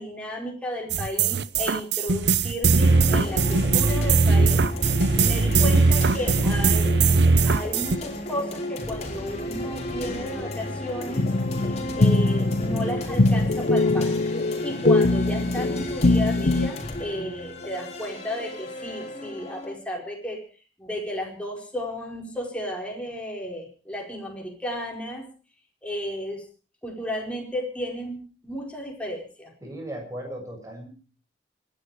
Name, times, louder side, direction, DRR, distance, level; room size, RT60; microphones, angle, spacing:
voice 1, 0.0-4.6 4.9-6.9 7.4-11.3 11.6-14.1 14.6-20.4 20.8-25.2 25.8-26.4 26.8-29.5, equal, 5° left, -1 dB, 4.8 m, -33 dB
sound 1, 0.9-8.0, right 4 dB, 70° right, 0.9 m, -20 dB
sound 2, 2.8-19.7, left 1 dB, 40° left, 4.0 m, -34 dB
sound 3, 11.2-16.7, left 2 dB, 55° left, 0.9 m, -22 dB
voice 2, 29.6-30.9, right 1 dB, 20° right, 2 dB, 6.9 m, -36 dB
26.0 x 11.0 x 5.0 m, 0.39 s
head